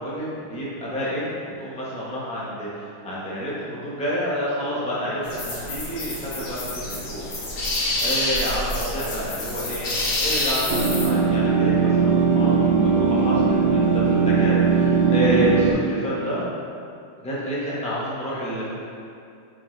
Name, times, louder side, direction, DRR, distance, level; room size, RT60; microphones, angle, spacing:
voice 1, 0.0-7.3 8.0-16.4 17.2-18.6, equal, 5° left, -8 dB, 0.8 m, -29 dB
sound 1, 5.2-11.1, left 1 dB, 55° left, 1.4 m, -27 dB
sound 2, 10.7-15.7, right 5 dB, 65° right, 1.1 m, -19 dB
7.6 x 4.2 x 3.3 m, 2.5 s
omnidirectional pair, 2.4 m